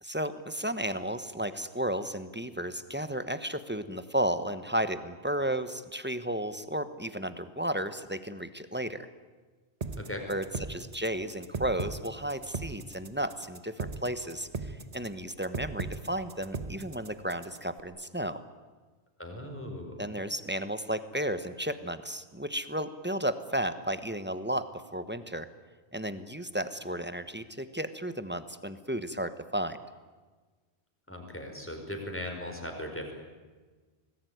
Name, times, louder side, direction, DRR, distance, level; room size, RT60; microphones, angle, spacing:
voice 1, 0.0-9.1 10.3-18.4 20.0-25.5 25.9-29.8, right 1 dB, 10° right, 11 dB, 1.2 m, -33 dB
sound 1, 9.8-17.8, right 4 dB, 35° right, 1.3 m, -37 dB
voice 2, 19.2-20.0 31.1-33.1, left 1 dB, 10° left, 3 dB, 4.9 m, -38 dB
25.5 x 19.5 x 9.5 m, 1.4 s
omnidirectional pair, 1.1 m